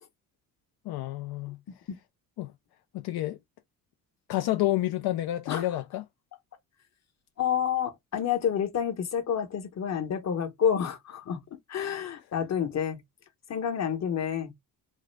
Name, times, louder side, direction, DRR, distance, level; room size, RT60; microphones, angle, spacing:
voice 1, 0.8-1.6 2.4-2.5 2.9-3.4 4.3-6.0, left 15 dB, 75° left, 0.5 m, -29 dB
voice 2, 1.7-2.0 5.5-5.8 7.4-13.0 13.5-14.5, left 8 dB, 45° left, 1.1 m, -29 dB
3.6 x 2.1 x 3.2 m
cardioid pair, 100°, 39 cm